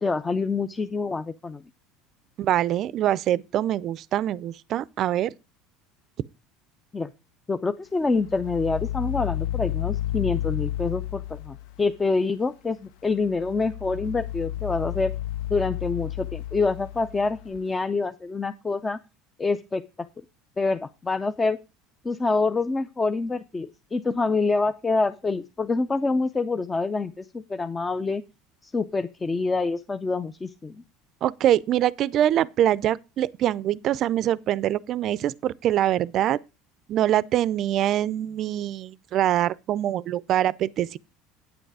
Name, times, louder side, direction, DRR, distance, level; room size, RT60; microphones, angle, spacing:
voice 1, 0.0-1.6 6.9-7.1 7.5-15.1 15.5-19.0 19.4-19.8 20.6-21.6 22.0-28.2 28.6-30.8, left 3 dB, 15° left, 0.5 m, -26 dB
voice 2, 2.4-5.3 31.2-36.4 36.9-41.0, right 12 dB, 45° right, 0.4 m, -24 dB
sound 1, 8.2-11.9 13.2-17.6, left 13 dB, 75° left, 0.5 m, -31 dB
9.1 x 7.9 x 4.8 m
supercardioid pair, 120°, 0 cm